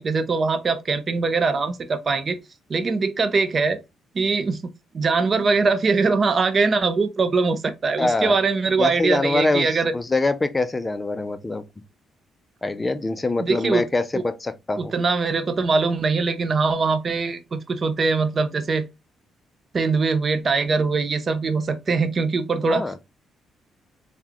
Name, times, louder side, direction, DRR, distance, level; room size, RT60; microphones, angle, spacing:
voice 1, 0.0-2.4 2.7-3.8 4.1-9.9 13.4-13.9 14.1-14.2 14.8-18.9 19.7-23.0, right 4 dB, 40° right, 0.5 m, -22 dB
voice 2, 8.0-8.4 8.8-11.6 12.6-14.9 22.7-23.0, left 2 dB, 20° left, 0.5 m, -24 dB
3.7 x 2.2 x 3.0 m
cardioid pair, 90°, 0 cm